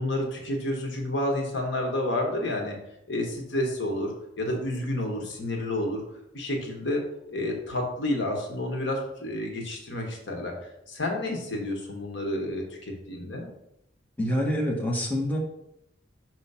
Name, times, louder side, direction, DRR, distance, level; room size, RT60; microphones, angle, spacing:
voice 1, 0.0-2.8 3.1-6.0 6.3-7.0 7.3-10.5 10.9-13.5, left 1 dB, 65° left, 1 dB, 1.3 m, -30 dB
voice 2, 14.2-15.4, equal, 10° left, -2 dB, 1.0 m, -26 dB
5.7 x 3.1 x 5.4 m, 0.82 s
head